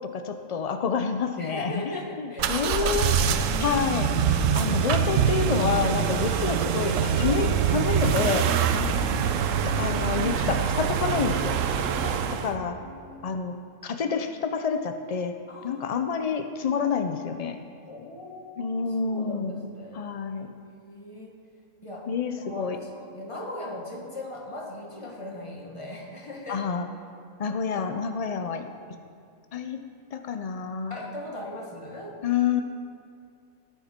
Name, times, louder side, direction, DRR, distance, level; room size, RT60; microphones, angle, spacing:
voice 1, 0.0-3.2 3.6-4.1 4.5-8.5 9.6-11.6 12.4-12.8 13.2-13.5 13.8-15.3 15.6-17.6 18.6-19.6 19.9-20.5 22.1-22.8 26.5-26.9 27.4-28.7 29.5-29.8 30.1-30.9 32.2-32.6, left 6 dB, 80° left, 7 dB, 0.3 m, -28 dB
voice 2, 1.4-3.1 3.5-3.9 4.8-5.0 6.1-6.4 8.7-9.6 12.0-13.2 15.5-16.1 17.9-20.0 20.3-21.3 21.8-22.1 22.4-26.7 27.7-27.9 30.9-32.2, left 1 dB, 25° left, -1 dB, 1.6 m, -39 dB
sound 1, 2.4-12.5, right 7 dB, 70° right, 1.0 m, -24 dB
18.0 x 6.9 x 4.3 m, 2.3 s
omnidirectional pair, 1.4 m